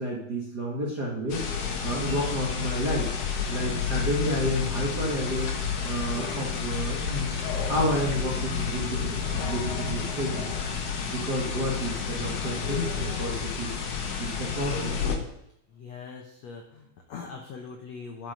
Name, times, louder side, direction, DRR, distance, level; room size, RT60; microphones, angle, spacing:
voice 1, 0.0-1.5 1.8-3.1 3.5-5.5 5.8-7.4 7.7-10.5 11.0-13.7 14.2-15.0, equal, 55° right, -4 dB, 1.1 m, -30 dB
sound 1, 1.3-15.2, left 6 dB, 60° left, 1.7 m, -30 dB
voice 2, 15.7-18.3, left 5 dB, 85° left, 2 dB, 1.5 m, -41 dB
10.5 x 6.1 x 5.2 m, 0.77 s
omnidirectional pair, 4.4 m